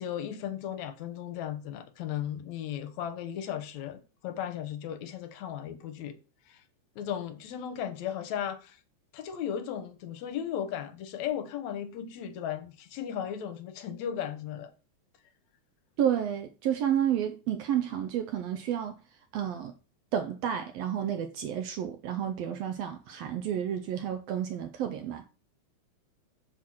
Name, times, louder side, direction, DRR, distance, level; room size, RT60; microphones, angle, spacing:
voice 1, 0.0-6.2 6.5-6.6 7.0-8.8 9.1-14.7, left 9 dB, 75° left, 2.1 m, -36 dB
voice 2, 16.0-19.0 19.3-19.7 20.1-25.3, right 9 dB, 75° right, 1.5 m, -31 dB
6.1 x 4.3 x 6.2 m
omnidirectional pair, 3.4 m